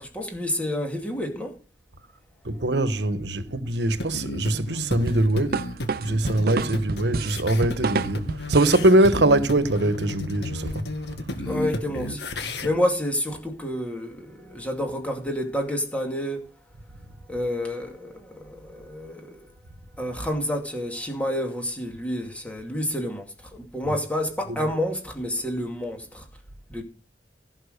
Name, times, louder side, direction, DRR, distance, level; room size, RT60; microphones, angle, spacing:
voice 1, 0.0-1.5 11.4-12.2 12.6-16.4 17.3-19.4 20.0-23.2 23.5-26.2 26.7-26.8, left 1 dB, 10° left, 2.4 m, -29 dB
voice 2, 2.4-5.6 6.0-10.8, right 1 dB, 70° right, 1.2 m, -22 dB
sound 1, 4.0-12.7, left 1 dB, 70° left, 2.0 m, -33 dB
sound 2, 5.1-8.9, right 4 dB, 55° right, 0.5 m, -29 dB
16.5 x 5.9 x 6.6 m
head